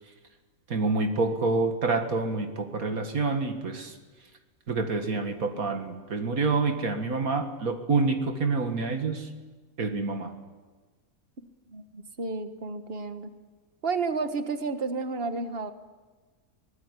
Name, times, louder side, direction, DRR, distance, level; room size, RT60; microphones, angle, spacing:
voice 1, 0.7-4.0 4.7-9.3 9.8-10.3, right 3 dB, 80° right, 5 dB, 2.3 m, -27 dB
voice 2, 11.4-13.3 13.8-15.7, right 4 dB, 45° right, 8 dB, 1.7 m, -32 dB
24.0 x 19.0 x 9.9 m, 1.3 s
omnidirectional pair, 1.5 m